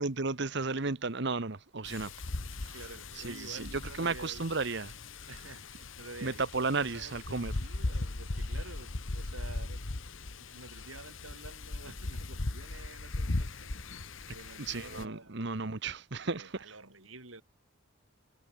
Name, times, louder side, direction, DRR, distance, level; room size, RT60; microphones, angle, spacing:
voice 1, 0.0-2.1 2.6-2.7 3.2-4.9 6.2-7.5 14.6-16.5, right 3 dB, 55° right, 1.2 m, -33 dB
Wind, 1.8-15.0, left 2 dB, 70° left, 1.4 m, -38 dB
voice 2, 2.5-4.5 5.3-9.8 10.4-13.7 14.3-15.4 16.3-17.4, right 2 dB, 80° right, 8.0 m, -49 dB
head